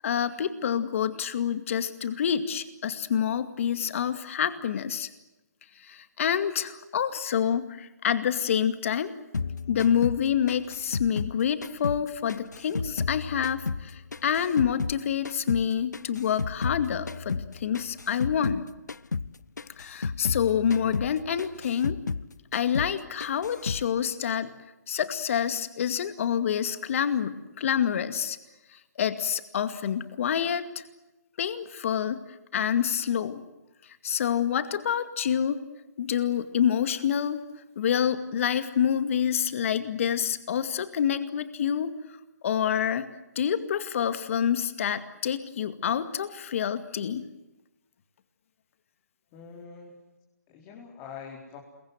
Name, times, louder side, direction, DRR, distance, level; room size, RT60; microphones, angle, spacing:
voice 1, 0.0-5.1 5.8-9.1 9.7-18.7 19.8-22.0 22.5-24.5 24.9-28.4 29.0-30.8 31.4-32.2 32.5-33.4 34.0-35.6 36.0-37.4 37.8-41.9 42.4-43.1 43.4-47.2, left 8 dB, 50° left, 10 dB, 2.2 m, -27 dB
sound 1, 9.3-12.0 12.3-15.0 15.3-18.6 18.9-19.3 19.6-22.3 22.5-23.0 23.2-23.9, left 4 dB, 90° left, 0.8 m, -33 dB
voice 2, 49.3-50.0 50.5-51.6, left 6 dB, 25° left, -1 dB, 4.5 m, -44 dB
27.0 x 23.0 x 8.0 m, 0.99 s
hypercardioid pair, 145°, 9 cm